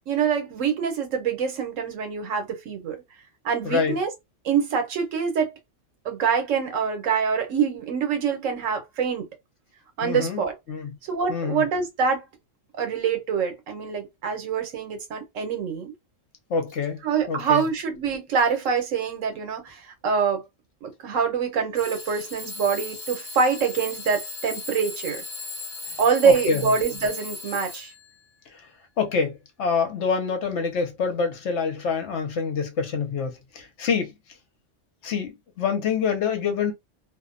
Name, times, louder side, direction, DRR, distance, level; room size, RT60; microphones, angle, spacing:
voice 1, 0.1-3.0 3.4-4.1 4.4-5.5 6.0-9.3 10.0-10.6 11.1-12.2 12.8-15.9 17.0-20.4 20.8-25.2 26.0-27.9, right 6 dB, 85° right, 1.1 m, -25 dB
voice 2, 3.6-4.0 10.0-10.4 10.7-10.9 11.3-11.6 16.5-17.0 17.3-17.6 26.2-26.7 28.5-28.6 29.0-34.1 35.0-36.7, left 5 dB, 70° left, 1.0 m, -26 dB
Alarm / Clock, 16.7-16.8 17.4-17.8 18.4-18.8 19.7-19.8 21.7-28.1, left 3 dB, 15° left, 0.6 m, -37 dB
2.5 x 2.1 x 2.4 m
omnidirectional pair, 1.3 m